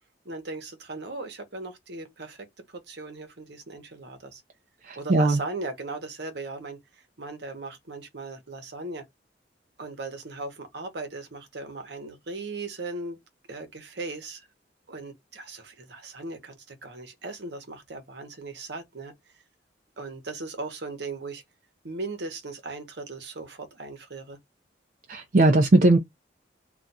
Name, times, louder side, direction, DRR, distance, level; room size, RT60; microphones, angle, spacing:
voice 1, 0.2-4.4 4.9-9.0 9.8-13.2 13.5-14.5 14.9-19.4 20.0-21.4 21.8-24.4, right 3 dB, 65° right, 0.9 m, -38 dB
voice 2, 4.8-5.4 25.1-26.0, right 2 dB, 50° right, 0.5 m, -19 dB
2.4 x 2.3 x 3.9 m
head